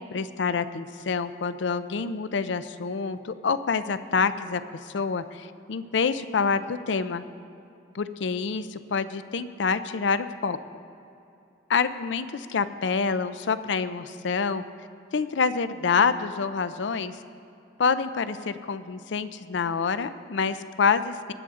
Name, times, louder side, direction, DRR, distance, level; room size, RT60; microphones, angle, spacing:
voice 1, 0.0-7.2 7.9-10.6 11.7-14.6 15.1-17.2 17.8-21.3, left 5 dB, 80° left, 13 dB, 0.5 m, -27 dB
20.5 x 8.5 x 3.7 m, 2.8 s
head